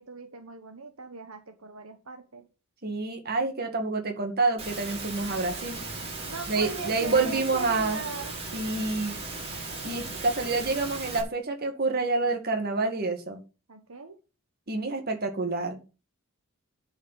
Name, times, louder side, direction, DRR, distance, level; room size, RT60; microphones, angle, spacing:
voice 1, 0.0-2.5 6.3-8.3 13.7-14.2, right 4 dB, 70° right, 6 dB, 1.4 m, -39 dB
voice 2, 2.8-5.8 6.5-8.0 8.5-9.2 9.8-13.4 14.7-15.8, right 3 dB, 45° right, 4 dB, 2.1 m, -28 dB
Engine / Mechanisms, 4.6-11.2, right 3 dB, 25° right, 4.7 m, -37 dB
11.0 x 5.6 x 7.7 m, 0.33 s
head